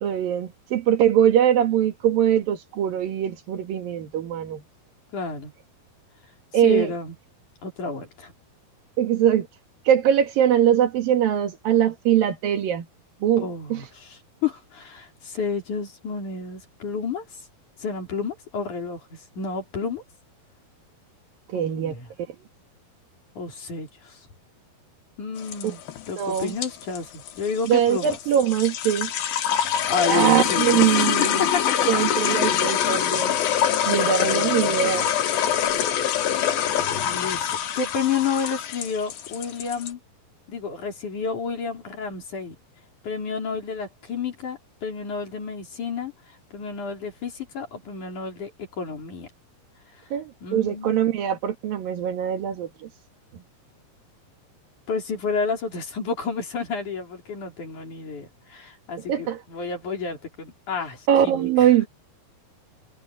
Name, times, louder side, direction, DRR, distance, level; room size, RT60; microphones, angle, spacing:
voice 1, 0.0-4.6 6.5-6.9 9.0-9.5 9.9-12.9 13.2-13.8 21.5-21.9 25.6-25.7 26.2-26.5 27.7-29.1 30.1-31.5 31.9-33.3 33.9-35.1 50.1-52.9 59.1-59.4 61.1-61.9, right 10 dB, 65° right, 3.4 m, -22 dB
voice 2, 5.1-5.5 6.6-7.1 7.6-8.3 13.4-17.3 17.8-20.0 21.5-22.1 23.4-24.2 25.2-25.8 26.1-28.2 29.9-32.0 32.3-32.6 33.9-34.8 37.0-37.5 37.8-40.0 40.5-42.6 43.0-49.3 50.4-51.0 54.9-61.7, left 5 dB, 50° left, 5.3 m, -30 dB
sound 1, 25.4-39.9, left 9 dB, 70° left, 3.3 m, -25 dB
omnidirectional pair, 4.5 m